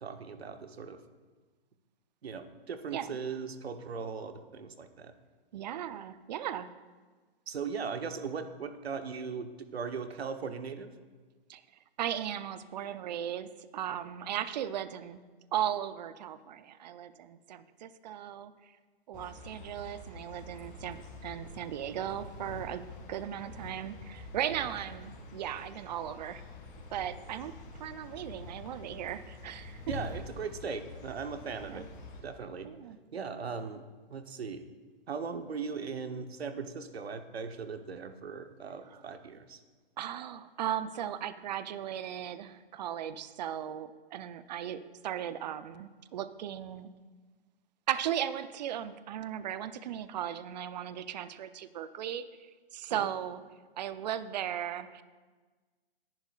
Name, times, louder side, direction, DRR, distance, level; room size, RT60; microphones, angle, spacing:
voice 1, 0.0-1.0 2.2-5.1 7.5-10.9 29.9-31.9 32.2-32.7 33.1-34.7 35.1-39.6 52.9-53.1, right 5 dB, 80° right, 8 dB, 1.1 m, -39 dB
voice 2, 5.5-6.7 11.5-11.6 12.0-15.2 15.5-18.5 19.1-22.8 23.1-26.4 26.9-29.8 31.4-31.8 32.6-33.0 40.0-46.9 47.9-52.2 52.7-53.4 53.8-55.0, right 10 dB, 45° right, 13 dB, 0.6 m, -37 dB
sound 1, 19.1-32.2, left 2 dB, 25° left, 2.3 m, -47 dB
19.0 x 10.5 x 2.5 m, 1.4 s
hypercardioid pair, 140°, 31 cm